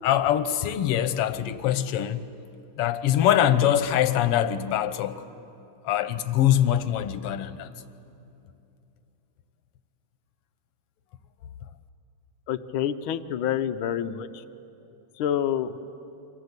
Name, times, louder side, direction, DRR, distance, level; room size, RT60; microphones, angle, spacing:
voice 1, 0.0-2.3 2.8-5.2 5.8-7.7, left 11 dB, 70° left, 1.5 m, -23 dB
voice 2, 12.5-14.4 15.2-15.8, left 9 dB, 85° left, 1.1 m, -27 dB
29.0 x 25.0 x 8.2 m
omnidirectional pair, 3.3 m